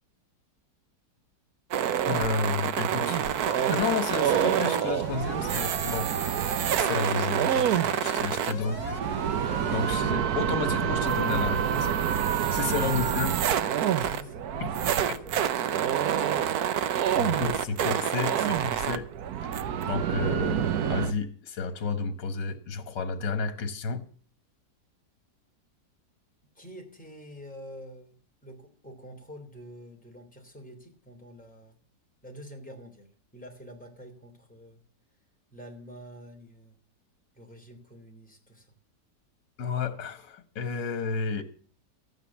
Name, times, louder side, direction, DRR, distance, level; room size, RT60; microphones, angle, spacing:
sound 1, 1.7-21.1, right 9 dB, 65° right, 1.2 m, -27 dB
voice 1, 2.0-3.2 3.7-6.1 6.8-7.7 8.0-8.8 9.7-11.9 12.5-13.3 14.6-14.8 16.3-16.5 17.2-19.1 19.9-24.0 39.6-41.4, left 5 dB, 85° left, 1.9 m, -31 dB
Alarm, 3.0-10.0, left 3 dB, 25° left, 2.3 m, -42 dB
voice 2, 8.2-8.9 12.6-15.6 26.5-28.1 28.4-31.8 32.2-34.8 35.5-36.7 37.3-38.7, equal, 5° left, 3.0 m, -47 dB
13.0 x 9.2 x 7.1 m
omnidirectional pair, 1.9 m